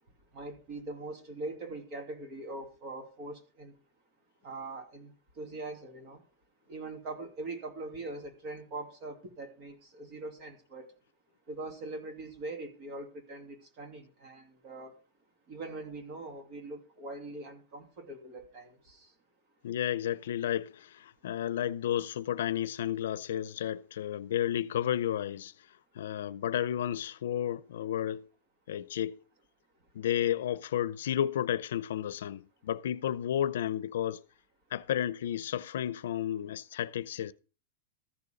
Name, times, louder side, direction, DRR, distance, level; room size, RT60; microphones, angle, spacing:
voice 1, 0.3-3.7 4.4-5.1 5.4-6.2 6.7-10.9 11.5-15.0 15.5-19.1, right 2 dB, 30° right, 2.7 m, -42 dB
voice 2, 19.6-25.5 25.9-28.3 28.7-29.2 29.9-34.2 34.7-37.3, left 11 dB, 75° left, 0.6 m, -32 dB
14.0 x 6.9 x 5.1 m
supercardioid pair, 175°, 0 cm